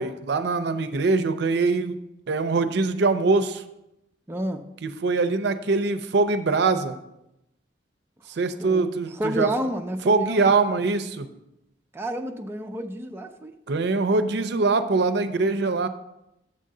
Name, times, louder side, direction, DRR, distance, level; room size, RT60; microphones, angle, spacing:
voice 1, 0.0-2.0 2.3-3.6 4.8-7.0 8.4-9.5 10.1-11.3 13.7-15.9, right 3 dB, 65° right, 9 dB, 0.5 m, -23 dB
voice 2, 4.3-4.6 8.3-10.5 11.9-13.5, right 1 dB, 15° right, 4 dB, 0.4 m, -30 dB
7.6 x 3.7 x 6.5 m, 0.87 s
head